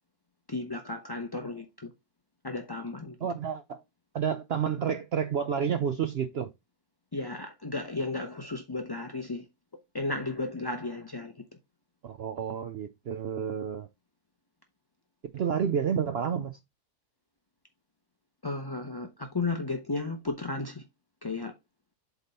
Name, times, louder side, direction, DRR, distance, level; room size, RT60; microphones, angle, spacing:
voice 1, 0.5-1.9 2.4-3.2 7.1-9.4 9.9-11.3 18.4-20.8 21.2-21.5, left 3 dB, 35° left, 0.4 m, -34 dB
voice 2, 3.2-3.8 4.1-6.5 12.0-13.9 15.3-16.6, right 7 dB, 75° right, 0.5 m, -30 dB
8.1 x 3.6 x 4.1 m
omnidirectional pair, 1.7 m